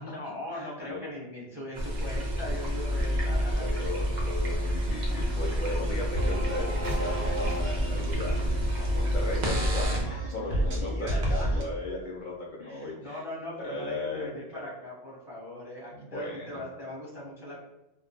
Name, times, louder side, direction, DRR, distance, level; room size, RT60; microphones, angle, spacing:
voice 1, 0.0-4.1 10.5-11.5 12.6-17.6, left 1 dB, 5° right, -5 dB, 0.6 m, -40 dB
voice 2, 0.5-1.0 3.0-10.9 11.3-13.2 13.6-14.3 15.9-16.5, left 2 dB, 60° left, -4 dB, 0.6 m, -37 dB
sound 1, 1.8-10.0, equal, 55° right, 0.6 m, -29 dB
sound 2, 6.1-11.6, right 1 dB, 90° right, 0.9 m, -32 dB
2.3 x 2.1 x 2.7 m, 0.98 s
omnidirectional pair, 1.1 m